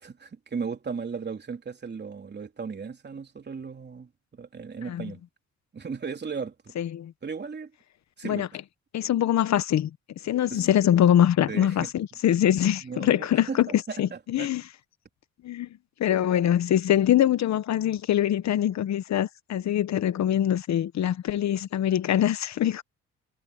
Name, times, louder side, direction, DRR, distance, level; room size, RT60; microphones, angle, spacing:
voice 1, 0.0-5.2 5.7-6.7 7.2-7.7 8.2-8.5 10.5-10.6 11.5-11.9 12.8-14.5, right 5 dB, 35° right, 3.5 m, -36 dB
voice 2, 6.8-7.1 8.2-8.5 8.9-9.9 10.2-14.6 15.4-15.7 16.0-22.8, left 11 dB, 65° left, 1.1 m, -23 dB
cardioid pair, 90°, 30 cm